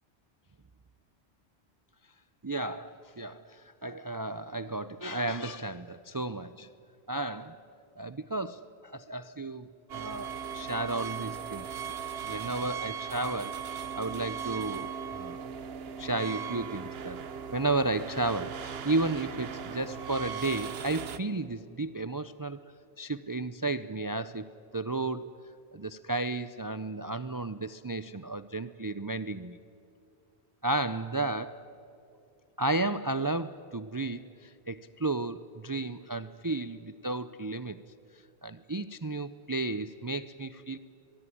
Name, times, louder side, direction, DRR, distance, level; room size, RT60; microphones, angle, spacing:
voice 1, 2.4-6.7 7.1-7.6 8.0-9.7 9.9-11.7 12.2-13.6 13.9-15.4 16.0-17.2 17.5-22.6 23.0-25.3 25.7-29.6 30.6-31.6 32.6-37.8 38.4-40.8, right 2 dB, 30° right, 14 dB, 0.4 m, -33 dB
sound 1, 9.9-21.2, right 7 dB, 65° right, 1.1 m, -38 dB
23.0 x 22.5 x 10.0 m, 2.6 s
omnidirectional pair, 1.1 m